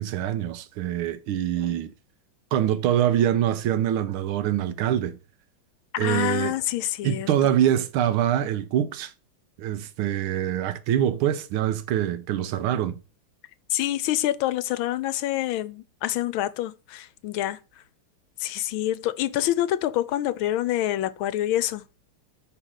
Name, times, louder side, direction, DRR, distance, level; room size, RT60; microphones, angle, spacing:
voice 1, 0.0-1.9 2.5-5.2 6.0-6.5 7.0-9.1 9.6-13.0, right 11 dB, 85° right, 1.6 m, -24 dB
voice 2, 5.9-7.5 13.7-17.6 18.4-21.8, left 13 dB, 75° left, 1.3 m, -26 dB
5.9 x 5.0 x 6.3 m
omnidirectional pair, 2.3 m